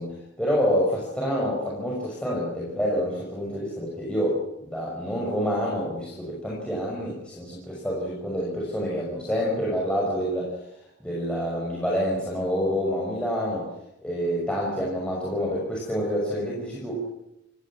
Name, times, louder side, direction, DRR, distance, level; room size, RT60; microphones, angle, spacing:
voice 1, 0.0-10.6 11.0-13.7 14.0-17.1, equal, 5° left, -4 dB, 6.0 m, -27 dB
28.5 x 17.5 x 6.1 m, 0.86 s
head